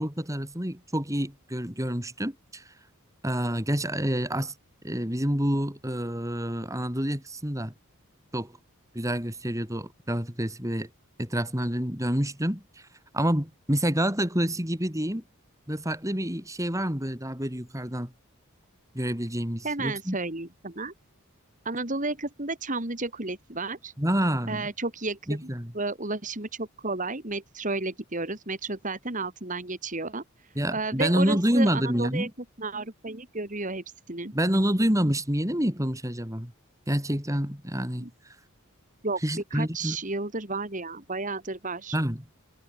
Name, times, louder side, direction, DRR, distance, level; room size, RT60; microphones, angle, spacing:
voice 1, 0.0-2.6 3.2-4.5 4.8-7.7 8.3-8.5 8.9-10.9 11.2-12.6 13.1-15.2 15.7-18.1 18.9-20.2 24.0-24.7 25.3-25.7 30.5-32.3 34.3-36.5 36.9-38.1 39.2-40.0 41.9-42.2, equal, 15° right, 4.8 m, -28 dB
voice 2, 19.6-20.9 21.6-23.9 24.5-25.5 25.7-30.2 30.7-32.3 32.6-34.3 38.0-38.1 39.0-39.2 39.5-42.0, right 3 dB, 35° right, 3.0 m, -32 dB
head